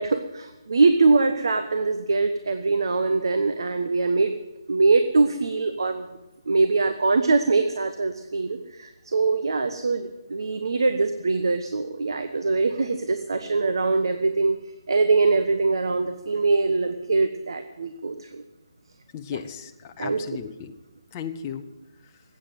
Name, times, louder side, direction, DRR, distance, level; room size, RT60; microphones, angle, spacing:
voice 1, 0.0-4.3 4.7-6.1 6.5-14.6 14.9-18.4 20.0-20.2, right 3 dB, 70° right, 8 dB, 1.0 m, -23 dB
voice 2, 19.1-20.7 21.1-21.7, left 8 dB, 20° left, 5 dB, 0.7 m, -35 dB
14.0 x 8.8 x 9.3 m, 1.0 s
hypercardioid pair, 170°, 2 cm